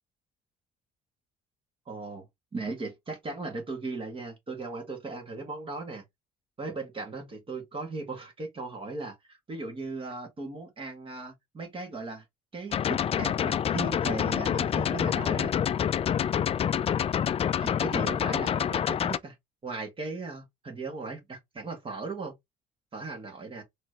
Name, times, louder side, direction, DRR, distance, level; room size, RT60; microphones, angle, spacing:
voice 1, 1.9-2.2 2.5-6.0 6.6-12.2 12.5-15.5 17.6-19.3 19.6-22.3 22.9-23.6, right 3 dB, 30° right, 1.8 m, -37 dB
sound 1, 12.7-19.2, left 9 dB, 35° left, 0.4 m, -27 dB
4.3 x 3.1 x 3.1 m
cardioid pair, 110°, 17 cm